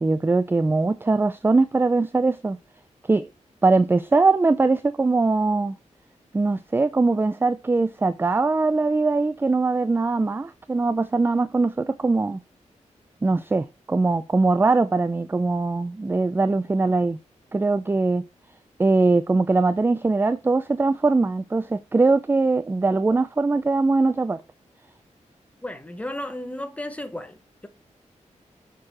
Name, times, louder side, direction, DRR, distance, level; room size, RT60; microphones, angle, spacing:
voice 1, 0.0-2.6 3.1-3.3 3.6-5.8 6.3-12.4 13.2-17.2 17.5-18.2 18.8-24.4, right 3 dB, 15° right, 0.4 m, -21 dB
voice 2, 25.6-27.4, left 1 dB, 10° left, 1.1 m, -33 dB
6.7 x 6.2 x 2.8 m
wide cardioid pair, 110°, 13 cm